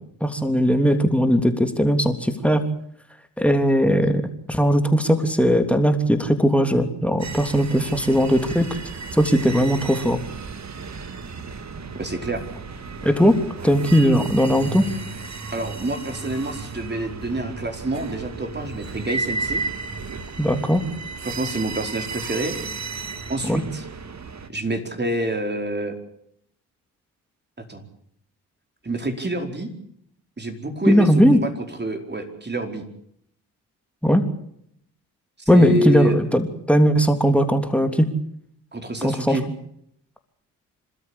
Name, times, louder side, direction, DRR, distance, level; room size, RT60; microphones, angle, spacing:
voice 1, 0.2-2.6 3.4-4.2 4.5-8.7 9.1-10.2 13.0-13.4 13.6-14.9 20.4-20.8 23.4-23.6 30.9-31.4 34.0-34.2 35.5-38.1 39.0-39.4, equal, 5° left, 6 dB, 3.1 m, -18 dB
sound 1, 7.2-24.5, right 4 dB, 40° right, 2.2 m, -34 dB
voice 2, 11.9-12.4 15.5-19.6 21.2-22.6 23.3-23.8 24.5-25.9 27.7-27.9 28.8-29.7 30.4-32.9 35.5-36.1 38.7-39.4, right 1 dB, 25° right, 5 dB, 4.7 m, -27 dB
27.5 x 13.0 x 8.7 m, 0.72 s
hypercardioid pair, 50°, 43 cm